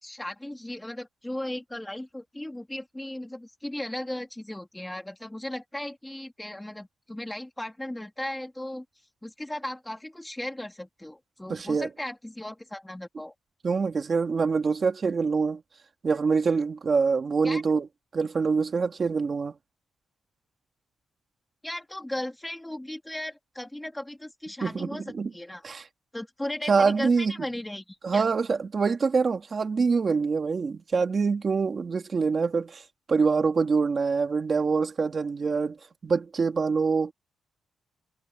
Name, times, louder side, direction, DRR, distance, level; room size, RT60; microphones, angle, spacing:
voice 1, 0.0-8.8 9.2-13.3 17.4-17.6 21.6-25.0 25.3-25.6 26.1-28.2, left 1 dB, 5° left, 2.9 m, -36 dB
voice 2, 11.5-11.9 13.6-15.6 16.0-17.9 18.1-19.5 24.6-25.3 25.6-25.9 26.7-27.3 28.0-35.8 36.0-37.1, right 5 dB, 35° right, 2.5 m, -25 dB
wide cardioid pair, 165°, 0 cm